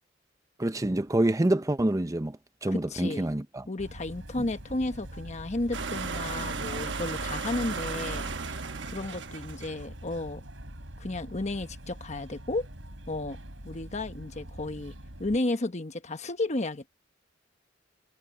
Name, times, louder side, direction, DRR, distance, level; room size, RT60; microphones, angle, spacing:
voice 1, 0.6-3.7, right 1 dB, 20° right, 0.7 m, -27 dB
voice 2, 2.7-3.3 3.7-10.5 11.0-12.7 13.1-13.4 13.6-16.9, left 2 dB, 40° left, 1.1 m, -33 dB
sound 1, 3.8-15.4, equal, 85° right, 6.4 m, -45 dB
sound 2, 5.7-9.9, right 4 dB, 70° right, 1.1 m, -35 dB
head